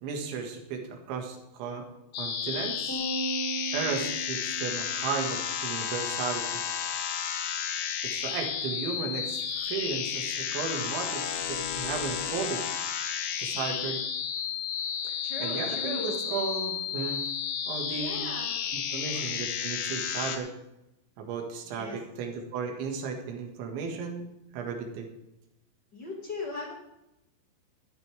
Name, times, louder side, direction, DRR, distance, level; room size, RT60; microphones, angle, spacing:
voice 1, 0.0-1.9 2.2-3.0 3.7-6.6 8.0-12.6 13.4-14.0 15.1-17.2 17.7-18.2 18.7-20.5 21.2-24.3 24.5-25.1, right 5 dB, 75° right, 2 dB, 4.1 m, -35 dB
sound 1, 2.1-20.4, left 8 dB, 90° left, 3.6 m, -32 dB
sound 2, 2.9-5.3, right 4 dB, 15° right, 3.7 m, -36 dB
voice 2, 15.2-16.4 17.9-18.6 18.9-19.3 21.6-22.0 25.9-26.7, left 2 dB, 55° left, -1 dB, 1.1 m, -39 dB
14.5 x 13.0 x 3.5 m, 0.88 s
omnidirectional pair, 5.5 m